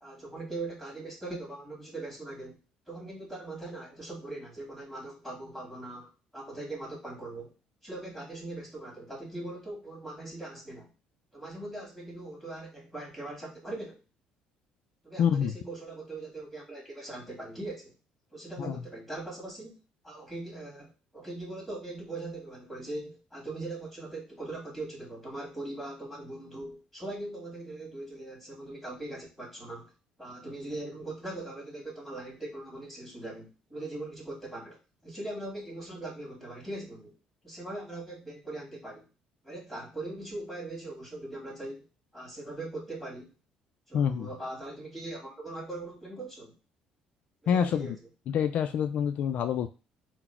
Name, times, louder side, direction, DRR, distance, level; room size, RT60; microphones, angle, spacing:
voice 1, 0.0-2.6 2.9-7.5 7.8-10.9 11.3-14.0 15.0-17.9 18.3-19.8 20.0-29.9 30.2-37.1 37.4-39.1 39.4-41.9 42.1-43.3 43.9-46.5 47.4-47.9, right 2 dB, ahead, -1 dB, 1.7 m, -40 dB
voice 2, 15.2-15.5 18.6-18.8 43.9-44.3 47.5-48.0 48.3-49.7, left 8 dB, 60° left, 8 dB, 0.3 m, -27 dB
4.0 x 2.0 x 4.3 m, 0.31 s
cardioid pair, 115°, 3 cm